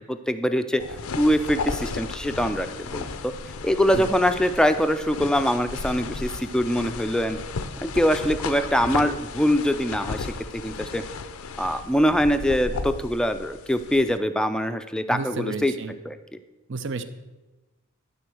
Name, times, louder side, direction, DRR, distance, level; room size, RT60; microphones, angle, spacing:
voice 1, 0.3-0.8 1.2-3.3 3.6-7.4 7.8-10.3 10.5-11.0 11.6-15.7 16.1-16.2, equal, 5° left, 8 dB, 0.4 m, -23 dB
sound 1, 0.8-14.2, left 4 dB, 85° left, 0.6 m, -34 dB
voice 2, 15.1-15.9 16.7-17.0, right 4 dB, 60° right, 11 dB, 0.6 m, -31 dB
12.0 x 4.4 x 6.2 m, 1.1 s
head